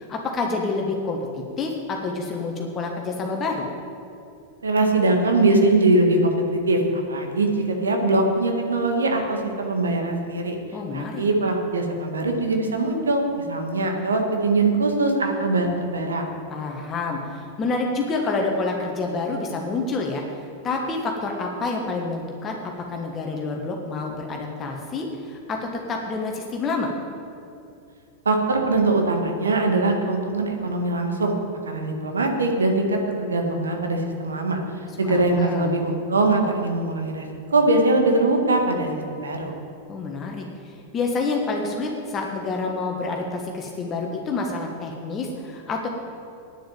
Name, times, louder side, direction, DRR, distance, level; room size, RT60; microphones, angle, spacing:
voice 1, 0.0-3.6 10.7-11.2 16.5-22.6 22.9-26.9 35.0-35.8 39.9-45.9, left 3 dB, 25° left, 1 dB, 1.4 m, -28 dB
voice 2, 4.6-10.6 10.9-16.2 28.2-31.3 31.6-34.6 35.0-39.5, right 2 dB, 70° right, 3 dB, 1.7 m, -22 dB
9.5 x 7.7 x 9.1 m, 2.6 s
figure-of-eight pair, 90°, 0 cm